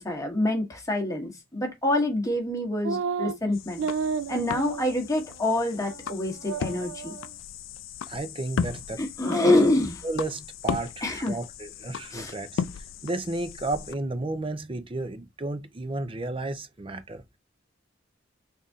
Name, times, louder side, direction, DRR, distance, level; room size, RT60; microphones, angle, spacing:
voice 1, 0.0-3.9 4.3-7.2 9.0-10.0 11.0-11.4 12.1-12.3, left 1 dB, 15° left, 1.2 m, -26 dB
sound 1, 2.8-3.4 3.8-5.0 5.3-5.4 5.8-6.2 6.4-7.3, right 5 dB, 80° right, 0.4 m, -31 dB
sound 2, 3.5-13.9, left 6 dB, 85° left, 0.4 m, -36 dB
voice 2, 8.1-9.0 10.0-17.4, right 2 dB, 30° right, 0.6 m, -33 dB
4.0 x 2.7 x 3.5 m
head